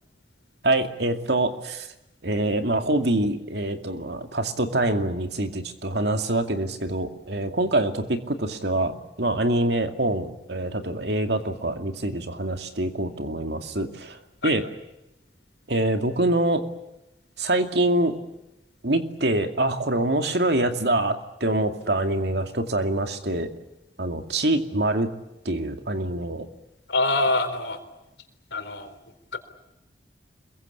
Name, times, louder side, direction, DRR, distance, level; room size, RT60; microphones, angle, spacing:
voice 1, 0.6-1.9 2.2-14.2 14.4-14.7 15.7-16.6 17.4-18.2 18.8-23.5 24.0-25.1 25.4-26.5, right 1 dB, 70° right, 6 dB, 2.4 m, -25 dB
voice 2, 26.9-27.8 28.5-29.0 29.3-29.4, left 2 dB, 90° left, 8 dB, 4.0 m, -25 dB
26.5 x 23.0 x 8.6 m, 0.92 s
head